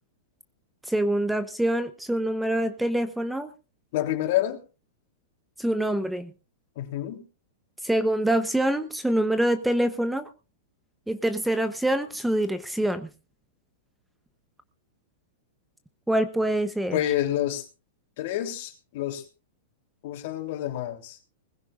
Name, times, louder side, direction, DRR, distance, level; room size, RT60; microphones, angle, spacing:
voice 1, 0.9-3.5 5.6-6.3 7.8-10.3 11.1-13.1 16.1-17.0, right 1 dB, 5° right, 11 dB, 1.0 m, -25 dB
voice 2, 3.9-4.6 6.7-7.2 16.9-17.6 18.2-19.3 20.0-21.2, left 13 dB, 60° left, 5 dB, 3.3 m, -28 dB
20.5 x 15.5 x 2.6 m, 0.32 s
hypercardioid pair, 115°, 0 cm